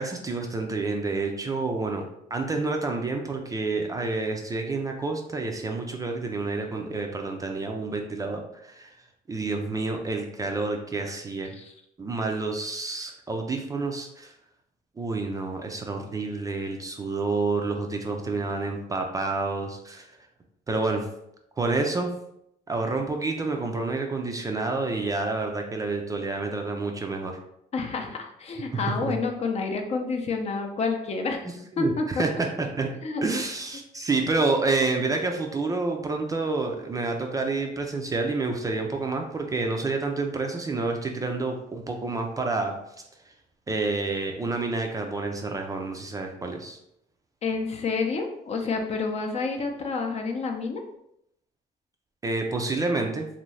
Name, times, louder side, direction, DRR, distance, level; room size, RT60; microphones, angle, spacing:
voice 1, 0.0-2.0 2.3-8.9 9.3-11.5 12.0-14.3 15.0-20.1 20.7-21.1 21.6-22.1 22.7-27.4 28.7-29.2 31.8-32.9 33.2-42.7 43.7-46.8 52.2-53.3, right 3 dB, 20° right, 3 dB, 0.4 m, -28 dB
voice 2, 27.7-31.4 31.8-32.2 33.0-33.2 47.4-50.8, left 4 dB, 40° left, 3 dB, 0.5 m, -29 dB
2.6 x 2.6 x 3.1 m, 0.77 s
cardioid pair, 110°, 17 cm